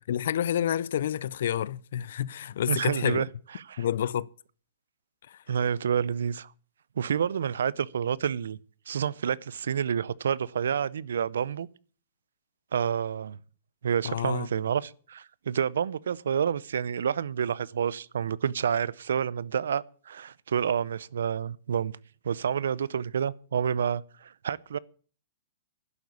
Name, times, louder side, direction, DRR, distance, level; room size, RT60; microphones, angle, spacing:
voice 1, 0.1-3.2 3.8-4.3 5.3-5.4 14.0-14.5, left 10 dB, 70° left, 0.5 m, -29 dB
voice 2, 2.7-3.3 3.7-3.8 5.5-6.5 7.0-8.6 8.9-11.7 12.7-13.4 13.8-22.0 22.2-24.8, right 8 dB, 85° right, 0.6 m, -29 dB
11.0 x 8.0 x 8.5 m
hypercardioid pair, 140°, 0 cm